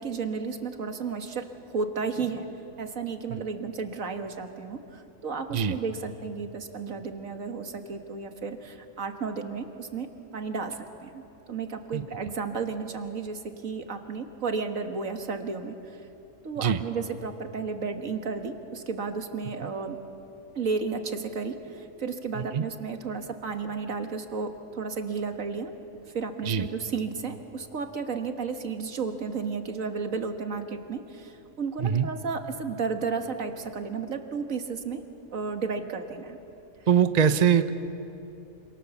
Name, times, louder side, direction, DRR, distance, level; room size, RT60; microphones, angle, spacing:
voice 1, 0.0-2.5 2.8-10.1 10.3-11.2 11.5-15.8 16.4-20.0 20.6-25.7 26.1-35.0 35.3-36.4, right 5 dB, 65° right, 6 dB, 2.0 m, -33 dB
voice 2, 36.9-37.7, right 8 dB, 35° right, 10 dB, 0.7 m, -23 dB
27.5 x 27.0 x 7.1 m, 2.8 s
omnidirectional pair, 1.5 m